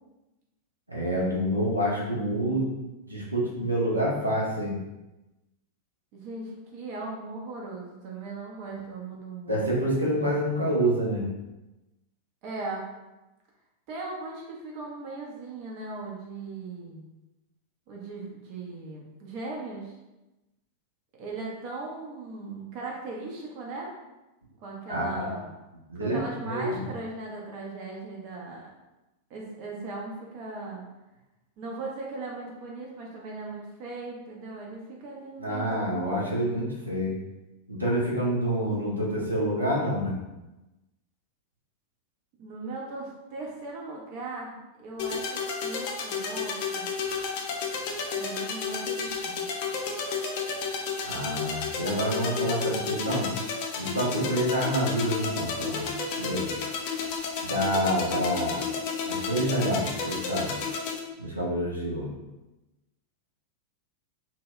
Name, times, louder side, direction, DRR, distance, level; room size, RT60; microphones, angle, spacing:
voice 1, 0.9-2.7 3.1-4.8 9.5-11.3 24.9-25.4 25.9-26.9 35.4-37.1 37.7-40.2 51.0-53.3 53.8-55.8 56.2-56.5 57.4-58.6 59.0-60.5 61.2-62.1, equal, 85° right, -5 dB, 0.7 m, -27 dB
voice 2, 6.1-9.7 12.4-12.9 13.9-17.1 17.9-19.9 21.2-23.9 24.6-25.6 25.9-28.7 29.3-30.8 31.6-35.9 42.4-46.9 48.2-49.4 54.1-54.4, right 3 dB, 45° right, -2 dB, 0.6 m, -38 dB
sound 1, 45.0-61.0, left 5 dB, 50° left, 0.4 m, -32 dB
2.7 x 2.2 x 3.0 m, 1.0 s
figure-of-eight pair, 90°, 0 cm